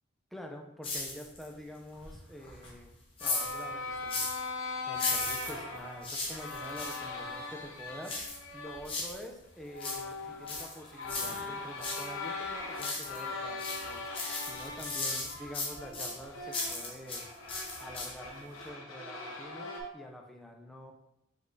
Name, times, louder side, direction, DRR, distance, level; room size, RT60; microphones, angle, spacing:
voice 1, 0.3-17.3 17.8-20.9, equal, ahead, 1 dB, 0.4 m, -47 dB
sound 1, 0.8-1.6 1.9-4.5 4.9-7.0 8.0-9.3 9.6-12.1 12.4-13.3 13.6-17.2 17.5-18.3 18.6-18.7, left 3 dB, 25° left, 0.8 m, -37 dB
sound 2, 3.2-8.9 9.3-9.4 9.7-19.8, left 3 dB, 65° left, 0.9 m, -40 dB
4.9 x 4.1 x 2.7 m, 0.85 s
head